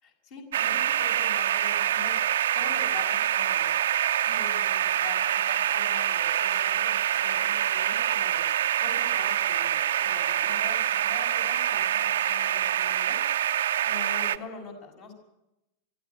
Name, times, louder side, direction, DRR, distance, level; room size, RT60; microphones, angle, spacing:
voice 1, 0.0-2.2 2.5-3.7 4.2-8.4 8.8-13.2 13.8-15.1, left 4 dB, 50° left, 1 dB, 5.9 m, -44 dB
sound 1, 0.5-14.4, right 11 dB, 60° right, 0.7 m, -25 dB
24.0 x 14.0 x 9.5 m, 0.92 s
figure-of-eight pair, 90°, 0 cm